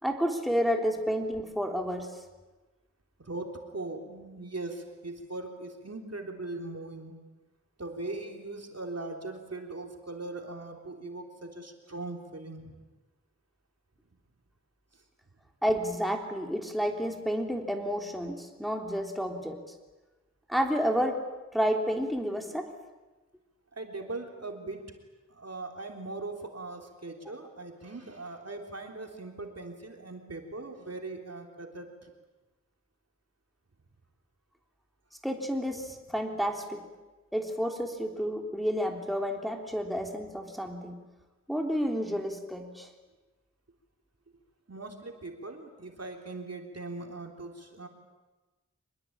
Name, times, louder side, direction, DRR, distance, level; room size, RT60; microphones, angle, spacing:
voice 1, 0.0-2.2 15.6-19.6 20.5-21.2 21.5-22.7 35.2-36.8 37.3-41.0 41.5-42.9, equal, ahead, 3 dB, 3.5 m, -30 dB
voice 2, 3.2-7.1 7.8-12.8 14.9-15.0 23.7-24.9 25.3-32.1 44.7-47.9, right 2 dB, 60° right, 3 dB, 3.5 m, -40 dB
25.5 x 21.0 x 8.8 m, 1.2 s
wide cardioid pair, 45°, 29 cm